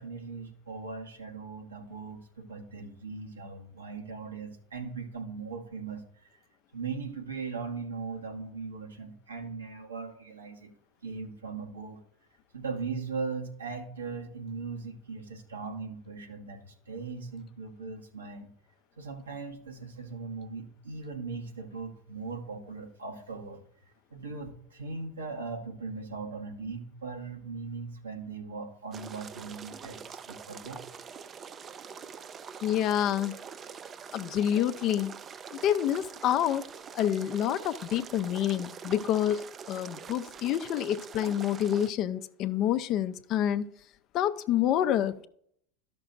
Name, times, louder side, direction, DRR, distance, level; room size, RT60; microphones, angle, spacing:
voice 1, 0.0-6.4 6.7-10.7 11.0-12.0 12.5-18.5 19.0-23.6 24.1-30.8, right 4 dB, 85° right, 2 dB, 1.2 m, -39 dB
sound 1, 28.9-41.9, right 7 dB, 30° right, 0.4 m, -44 dB
voice 2, 32.6-33.3 34.1-35.1 35.5-36.7 36.9-43.7 44.1-45.3, left 11 dB, 45° left, 11 dB, 0.5 m, -28 dB
13.0 x 6.1 x 2.5 m, 0.67 s
figure-of-eight pair, 80°, 0 cm